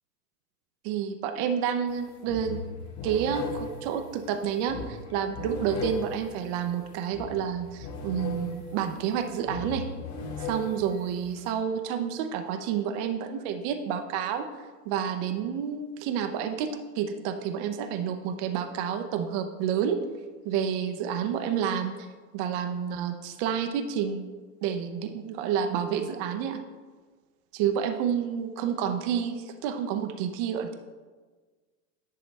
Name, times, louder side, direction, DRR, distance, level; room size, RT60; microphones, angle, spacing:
voice 1, 0.8-2.6 3.0-9.8 10.4-14.5 14.9-16.7 17.0-20.0 20.4-21.9 22.3-24.3 24.6-26.6 27.5-30.8, right 8 dB, 45° right, 7 dB, 0.7 m, -29 dB
sound 1, 1.9-2.0 2.3-11.5, left 3 dB, 35° left, 1.3 m, -38 dB
10.5 x 3.9 x 3.2 m, 1.4 s
hypercardioid pair, 105°, 49 cm